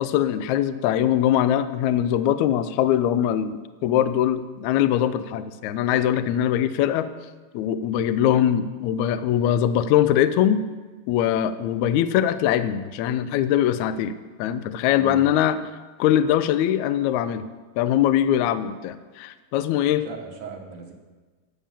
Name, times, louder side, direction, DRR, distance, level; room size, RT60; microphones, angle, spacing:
voice 1, 0.0-7.1 7.5-10.6 11.1-14.1 14.4-15.6 16.0-17.4 17.8-20.0, left 10 dB, 85° left, 12 dB, 1.6 m, -22 dB
voice 2, 20.0-20.9, right 7 dB, 60° right, 2 dB, 2.2 m, -38 dB
10.0 x 7.0 x 7.3 m, 1.3 s
omnidirectional pair, 3.9 m